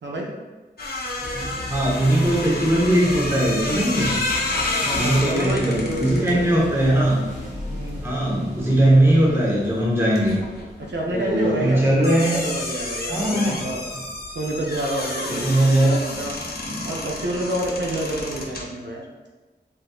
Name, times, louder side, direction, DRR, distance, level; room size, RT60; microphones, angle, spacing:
sound 1, 0.8-8.9 9.2-18.6, left 2 dB, 60° left, 0.6 m, -30 dB
sound 2, 1.2-14.9, left 1 dB, 40° left, 1.1 m, -36 dB
voice 1, 1.7-4.1 4.9-7.2 8.0-10.3 11.1-12.4 13.1-13.7 15.3-16.0 16.7-16.8, right 1 dB, 15° right, -5 dB, 0.9 m, -19 dB
voice 2, 4.9-6.7 7.7-8.0 10.8-11.8 12.3-13.8 14.4-16.3 16.8-19.0, right 1 dB, 80° right, -2 dB, 0.6 m, -28 dB
4.0 x 2.5 x 2.3 m, 1.2 s
wide cardioid pair, 90°, 18 cm